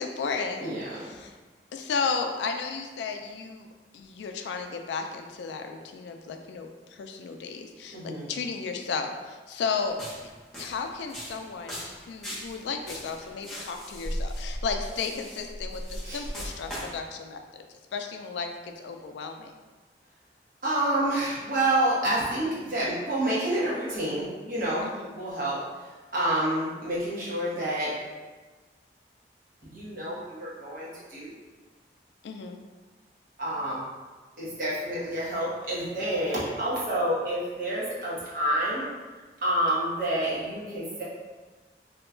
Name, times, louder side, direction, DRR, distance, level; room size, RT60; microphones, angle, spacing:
voice 1, 0.0-0.7 1.0-1.3 1.7-3.7 3.9-10.0 10.6-17.6 17.9-18.5 18.8-19.5 24.8-25.1 32.2-32.6, left 5 dB, 80° left, 5 dB, 0.3 m, -34 dB
voice 2, 0.6-1.0 7.9-8.3 16.0-16.2 20.6-24.8 25.1-25.6 26.1-27.9 29.6-31.3 33.4-33.8 34.4-38.9 39.4-41.0, right 1 dB, 50° right, -8 dB, 1.0 m, -28 dB
sound 1, 9.9-17.0, equal, ahead, 0.8 m, -37 dB
2.8 x 2.3 x 3.6 m, 1.3 s
head